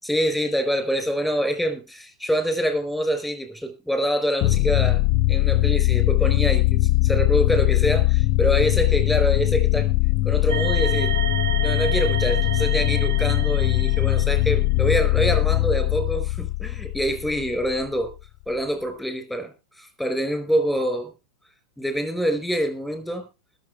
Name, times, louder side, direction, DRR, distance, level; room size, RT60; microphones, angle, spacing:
voice 1, 0.0-9.9 10.2-11.1 11.6-18.1 18.5-21.1 21.8-23.3, equal, ahead, 9 dB, 4.7 m, -25 dB
sound 1, 4.4-17.8, left 20 dB, 45° left, 0.9 m, -21 dB
sound 2, 10.5-14.8, right 7 dB, 90° right, 1.4 m, -31 dB
20.5 x 7.5 x 4.6 m, 0.30 s
figure-of-eight pair, 95°, 2 cm